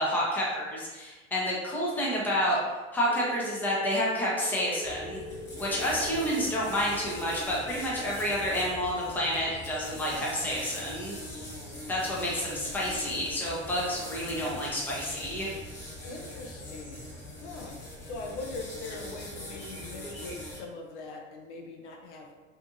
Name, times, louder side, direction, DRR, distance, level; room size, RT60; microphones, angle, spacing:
voice 1, 0.0-2.6 2.9-5.2 5.6-11.2 11.9-15.5, equal, 5° left, -5 dB, 0.6 m, -29 dB
sound 1, 3.1-11.4, right 1 dB, 75° right, 0.6 m, -44 dB
sound 2, 4.8-20.6, left 1 dB, 30° left, 1.0 m, -42 dB
voice 2, 12.5-13.4 16.0-17.1 17.4-17.8 18.0-22.3, left 3 dB, 60° left, 1 dB, 0.6 m, -42 dB
2.7 x 2.5 x 2.5 m, 1.2 s
hypercardioid pair, 90°, 39 cm